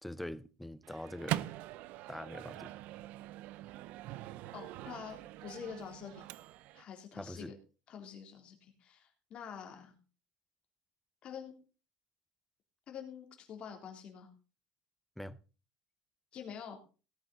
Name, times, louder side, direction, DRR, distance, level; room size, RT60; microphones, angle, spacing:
voice 1, 0.0-1.5 2.1-2.7 7.1-7.5 15.2-15.4, left 1 dB, 5° left, 0.5 m, -43 dB
Microwave oven, 0.8-6.8, right 15 dB, 60° right, 0.6 m, -43 dB
voice 2, 4.5-6.2 6.7-7.6 7.9-9.9 11.2-11.5 12.9-14.3 16.3-16.8, left 7 dB, 40° left, 3.4 m, -46 dB
17.5 x 8.8 x 4.1 m
cardioid pair, 155°, 3 cm